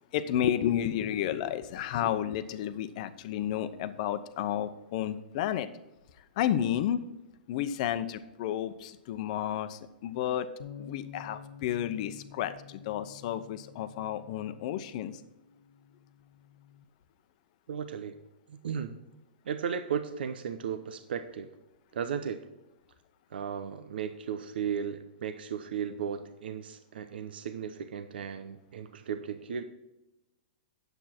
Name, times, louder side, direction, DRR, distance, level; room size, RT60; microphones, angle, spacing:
voice 1, 0.1-5.7 6.4-7.0 7.5-10.5 10.8-15.2, left 10 dB, 45° left, 11 dB, 0.8 m, -31 dB
Bass guitar, 10.6-16.8, left 7 dB, 80° left, 0.9 m, -50 dB
voice 2, 17.7-18.2 18.5-19.0 19.4-21.5 21.9-22.4 23.3-29.6, right 7 dB, 80° right, 9 dB, 0.8 m, -35 dB
9.7 x 8.0 x 4.4 m, 0.96 s
hypercardioid pair, 155°, 5 cm